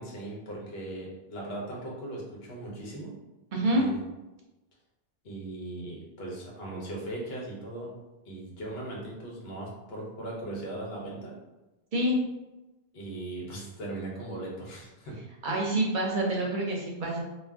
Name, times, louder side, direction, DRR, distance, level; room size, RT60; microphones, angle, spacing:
voice 1, 0.0-3.1 3.7-4.0 5.2-7.9 8.2-11.3 12.9-15.2 15.5-15.6, right 2 dB, 75° left, -3 dB, 1.1 m, -38 dB
voice 2, 3.5-3.9 11.9-12.2 15.4-17.2, right 1 dB, 55° right, -1 dB, 0.7 m, -27 dB
2.5 x 2.3 x 3.3 m, 1.0 s
omnidirectional pair, 1.0 m